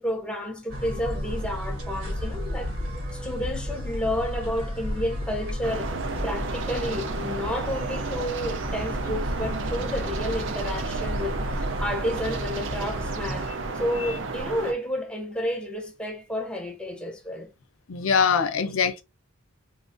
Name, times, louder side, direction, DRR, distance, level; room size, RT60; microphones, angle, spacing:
voice 1, 0.0-2.7 3.1-5.9 6.2-17.5 18.6-18.7, left 1 dB, 5° left, 0.6 m, -31 dB
sound 1, 0.7-13.5, equal, 85° right, 1.3 m, -33 dB
sound 2, 5.6-14.7, right 3 dB, 60° right, 0.5 m, -32 dB
voice 2, 17.9-19.0, left 6 dB, 75° left, 0.5 m, -22 dB
3.9 x 2.4 x 2.5 m
head